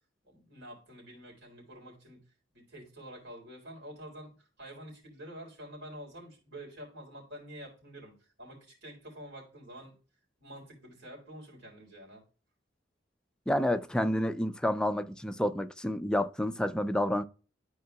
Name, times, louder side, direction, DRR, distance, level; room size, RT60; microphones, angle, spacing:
voice 1, 0.2-10.0 10.4-12.2, equal, 80° right, 3.8 m, -48 dB
voice 2, 13.5-17.2, left 1 dB, 5° left, 0.4 m, -29 dB
12.0 x 4.7 x 2.3 m
head